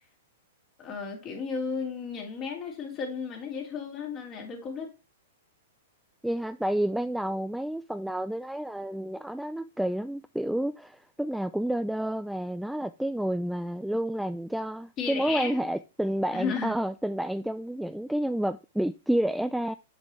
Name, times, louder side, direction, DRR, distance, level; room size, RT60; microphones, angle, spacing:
voice 1, 0.8-4.9 15.0-15.6 16.3-16.7, left 5 dB, 30° left, 3.3 m, -34 dB
voice 2, 6.2-19.8, right 1 dB, ahead, 0.3 m, -30 dB
7.8 x 6.0 x 3.1 m
hypercardioid pair, 110°, 0 cm